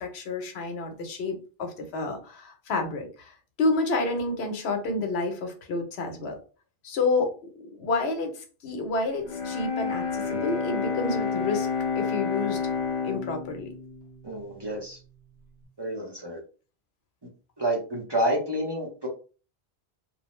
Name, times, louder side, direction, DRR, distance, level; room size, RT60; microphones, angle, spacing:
voice 1, 0.0-6.4 6.8-7.3 7.8-11.7 11.9-12.6 13.0-13.7, left 3 dB, 85° left, 5 dB, 0.9 m, -29 dB
Bowed string instrument, 9.2-15.2, left 5 dB, 50° left, 0.5 m, -30 dB
voice 2, 14.2-15.0 15.8-16.4 17.6-19.1, right 1 dB, 30° right, -1 dB, 0.6 m, -29 dB
2.6 x 2.0 x 3.0 m, 0.35 s
omnidirectional pair, 1.1 m